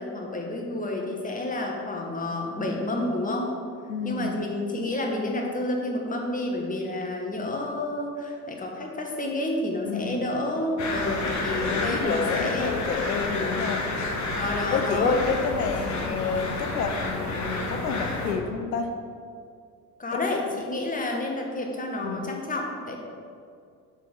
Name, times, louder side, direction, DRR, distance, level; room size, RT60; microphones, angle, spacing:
voice 1, 0.0-3.5 4.0-12.8 13.2-13.6 14.4-15.2 16.0-16.2 20.0-23.0, left 1 dB, 15° left, 0 dB, 1.2 m, -30 dB
voice 2, 3.9-4.4 9.9-10.3 11.5-13.8 14.7-18.9 20.1-20.4 22.0-22.3, left 5 dB, 85° left, 5 dB, 0.5 m, -29 dB
sound 1, 10.8-18.3, left 2 dB, 35° left, 1.3 m, -30 dB
6.6 x 3.9 x 6.0 m, 2.3 s
figure-of-eight pair, 60°, 47 cm